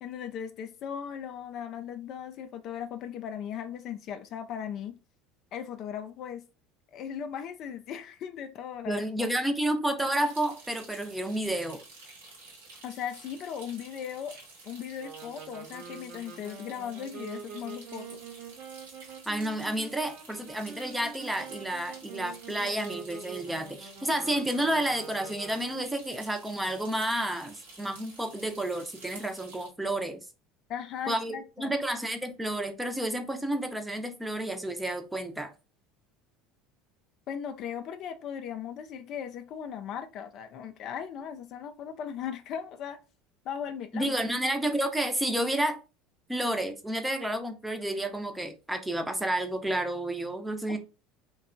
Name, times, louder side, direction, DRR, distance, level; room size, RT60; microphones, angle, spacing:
voice 1, 0.0-5.0 5.5-6.4 6.9-9.3 12.8-14.4 14.7-18.2 30.7-31.7 37.3-43.0 43.4-44.2 50.7-50.8, left 8 dB, 55° left, 0.3 m, -38 dB
voice 2, 8.9-11.8 19.3-30.2 31.1-35.5 43.9-45.8 46.3-50.8, right 1 dB, 10° right, 0.6 m, -30 dB
sound 1, 10.0-29.7, right 3 dB, 80° right, 0.9 m, -51 dB
sound 2, 15.0-26.0, right 6 dB, 55° right, 0.5 m, -45 dB
2.7 x 2.2 x 2.5 m
hypercardioid pair, 75°, 0 cm